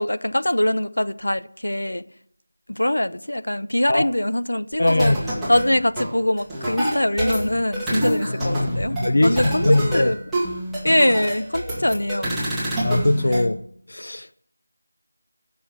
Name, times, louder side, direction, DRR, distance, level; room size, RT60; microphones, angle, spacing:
voice 1, 0.0-2.0 2.7-5.1 5.5-9.0 9.2-10.2 10.8-12.5, left 1 dB, 85° left, 1.0 m, -22 dB
sound 1, 4.7-13.5, right 1 dB, ahead, 2.3 m, -27 dB
voice 2, 4.8-5.2 8.0-10.1 12.8-13.6 13.9-14.3, left 1 dB, 60° left, 0.8 m, -22 dB
16.5 x 7.0 x 8.1 m
figure-of-eight pair, 170°, 0 cm